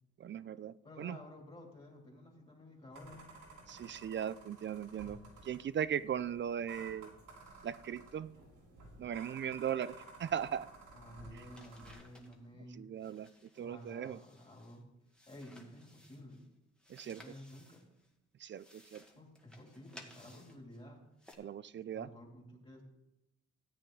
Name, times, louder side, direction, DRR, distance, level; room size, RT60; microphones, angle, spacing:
voice 1, 0.2-1.2 3.7-7.1 7.6-8.3 9.0-10.7 12.7-13.3 13.6-14.2 16.9-17.2 18.4-19.0 21.4-22.1, right 9 dB, 40° right, 0.4 m, -38 dB
voice 2, 0.8-3.3 10.9-12.9 13.5-14.8 15.3-16.4 17.0-17.8 19.2-21.0 21.9-22.8, left 1 dB, 20° left, 2.9 m, -52 dB
sound 1, 2.9-11.9, right 2 dB, 80° right, 3.5 m, -54 dB
sound 2, 11.3-12.5 13.0-14.8 15.1-16.5 16.8-18.1 18.4-20.8 21.2-21.3, left 1 dB, 5° left, 1.7 m, -60 dB
14.0 x 8.3 x 3.8 m
cardioid pair, 90°, 30 cm